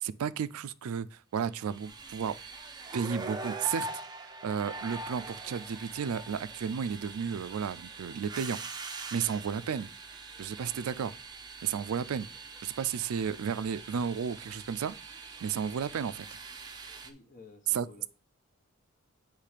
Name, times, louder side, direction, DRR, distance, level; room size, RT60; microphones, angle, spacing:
voice 1, 0.0-2.4 2.9-3.9 4.2-8.6 9.1-9.9 10.4-11.2 11.6-12.3 12.6-15.0 15.4-16.3 17.7-18.1, right 7 dB, 85° right, 0.4 m, -33 dB
sound 1, 1.6-17.1, right 3 dB, 20° right, 0.5 m, -43 dB
voice 2, 17.0-18.1, left 3 dB, 40° left, 1.0 m, -53 dB
8.4 x 3.2 x 4.9 m
head